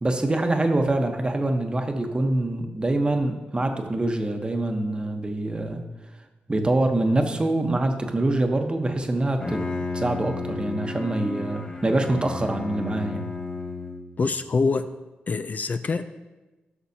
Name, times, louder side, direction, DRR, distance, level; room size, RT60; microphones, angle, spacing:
voice 1, 0.0-5.8 6.5-9.6 9.9-13.3, right 2 dB, 25° right, 5 dB, 1.0 m, -25 dB
Bowed string instrument, 9.2-14.3, left 3 dB, 25° left, 0.8 m, -33 dB
voice 2, 14.2-14.9 15.3-16.0, left 4 dB, 45° left, 9 dB, 0.4 m, -24 dB
12.5 x 6.1 x 2.8 m, 1.1 s
cardioid pair, 70°, 4 cm